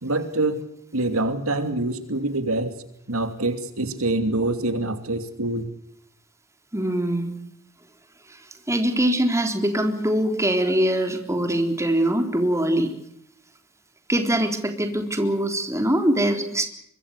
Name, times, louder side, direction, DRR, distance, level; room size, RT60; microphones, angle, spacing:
voice 1, 0.0-0.6 0.9-2.7 3.1-5.7, right 2 dB, 70° right, 9 dB, 2.9 m, -25 dB
voice 2, 6.7-7.4 8.7-12.9 14.1-16.7, right 1 dB, 15° right, 6 dB, 3.7 m, -22 dB
24.0 x 23.5 x 6.6 m, 0.73 s
head